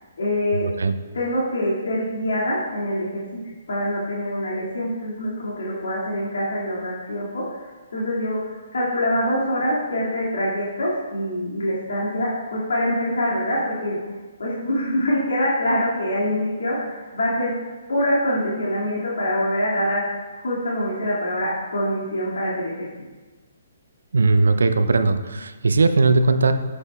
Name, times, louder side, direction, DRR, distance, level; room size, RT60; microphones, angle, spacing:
voice 1, 0.2-0.7 1.1-3.2 3.7-14.0 14.4-17.5 17.9-20.0 20.4-22.9, equal, 70° left, -7 dB, 2.2 m, -24 dB
voice 2, 24.1-26.5, right 3 dB, 75° right, 9 dB, 0.5 m, -18 dB
10.5 x 8.1 x 2.3 m, 1.3 s
figure-of-eight pair, 135°, 0 cm